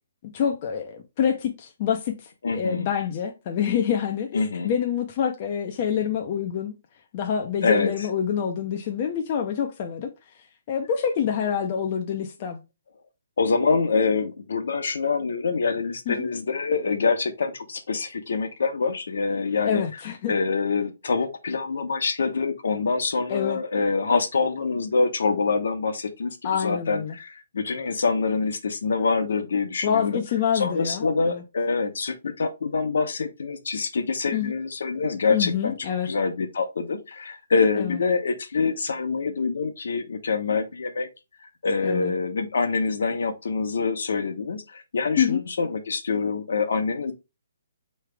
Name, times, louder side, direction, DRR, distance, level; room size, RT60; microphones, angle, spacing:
voice 1, 0.3-6.7 7.1-10.1 10.7-12.6 16.1-16.3 19.6-20.3 23.3-23.6 26.4-27.2 29.8-31.4 34.3-34.5 35.3-36.1 37.8-38.0 41.8-42.1 45.2-45.4, left 8 dB, 30° left, 0.5 m, -26 dB
voice 2, 2.4-2.9 4.3-4.7 7.6-7.9 13.4-19.8 20.3-30.2 30.5-35.8 36.0-41.1 41.6-47.1, left 4 dB, 70° left, 1.0 m, -25 dB
4.8 x 3.2 x 3.3 m
hypercardioid pair, 170°, 0 cm